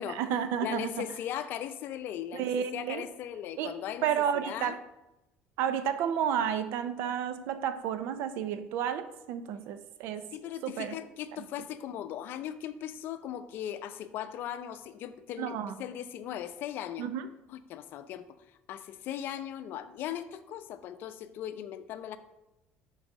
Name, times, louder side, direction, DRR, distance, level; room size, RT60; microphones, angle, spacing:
voice 1, 0.0-1.0 2.3-3.0 3.6-3.7 4.0-4.8 5.6-10.3 10.6-10.9 15.4-15.8 17.0-17.3, right 8 dB, 75° right, 11 dB, 0.5 m, -31 dB
voice 2, 0.6-4.1 4.3-4.8 10.3-17.1 17.5-18.3 18.7-22.2, left 10 dB, 60° left, 11 dB, 0.5 m, -38 dB
6.0 x 4.0 x 5.3 m, 0.93 s
cardioid pair, 105°, 4 cm